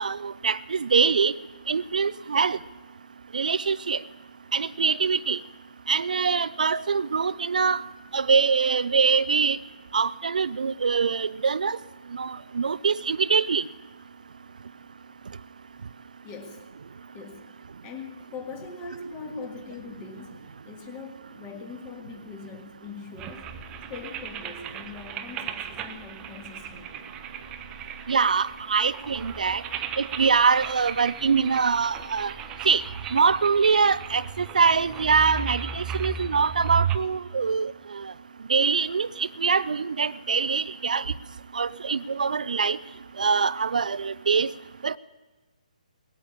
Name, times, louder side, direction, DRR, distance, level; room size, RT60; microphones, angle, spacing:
voice 1, 0.0-1.3 1.7-2.6 3.3-4.0 4.5-5.4 5.9-7.8 8.1-9.6 9.9-11.8 12.1-13.6 28.1-29.6 30.0-32.3 32.6-32.8 33.1-38.1 38.5-41.1 41.5-42.8 43.2-44.5 44.8-45.0, right 5 dB, 70° right, 16 dB, 0.4 m, -23 dB
voice 2, 16.2-16.7 17.1-17.5 17.8-23.6 23.9-27.1, left 4 dB, 20° left, 4 dB, 1.8 m, -41 dB
sound 1, 23.2-37.0, right 7 dB, 20° right, 0.6 m, -36 dB
19.0 x 8.4 x 8.5 m, 1.3 s
figure-of-eight pair, 140°, 4 cm